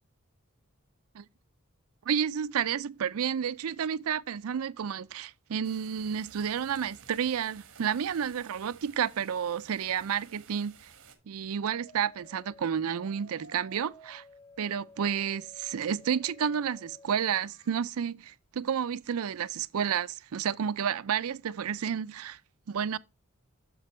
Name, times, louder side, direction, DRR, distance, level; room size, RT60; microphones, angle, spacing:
voice 1, 2.1-10.9 11.3-14.2 14.6-22.4 22.7-23.0, right 8 dB, 85° right, 0.4 m, -31 dB
sound 1, 5.6-11.2, right 6 dB, 65° right, 1.4 m, -54 dB
sound 2, 11.7-17.8, left 1 dB, 40° left, 3.0 m, -54 dB
7.9 x 6.7 x 3.1 m
head